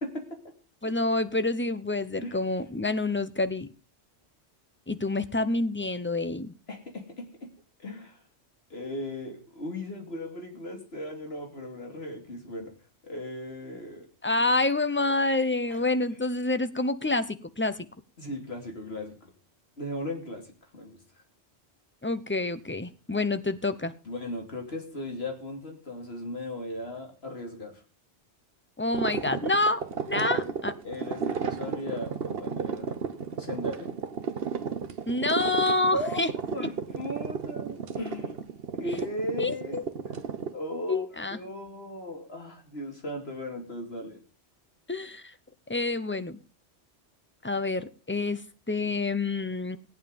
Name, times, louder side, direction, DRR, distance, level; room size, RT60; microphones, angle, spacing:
voice 1, 0.0-0.4 2.2-2.4 6.7-7.5 7.8-8.2 8.7-12.7 13.0-14.1 15.7-15.8 18.2-19.3 19.8-20.5 20.7-21.0 24.0-27.8 30.3-30.5 30.8-33.0 33.4-33.9 35.8-36.2 36.5-38.4 38.8-40.2 40.5-44.2, left 1 dB, 65° left, 3 dB, 3.2 m, -37 dB
voice 2, 0.8-3.7 4.9-6.5 14.2-17.8 22.0-23.9 28.8-29.8 30.1-30.7 35.1-36.3 39.4-39.8 40.9-41.4 44.9-45.2 45.7-46.4 47.4-48.4 48.7-49.8, left 2 dB, 10° left, 12 dB, 0.8 m, -27 dB
sound 1, 28.9-40.5, right 6 dB, 60° right, 1.1 m, -33 dB
17.0 x 9.3 x 5.3 m, 0.36 s
omnidirectional pair, 1.1 m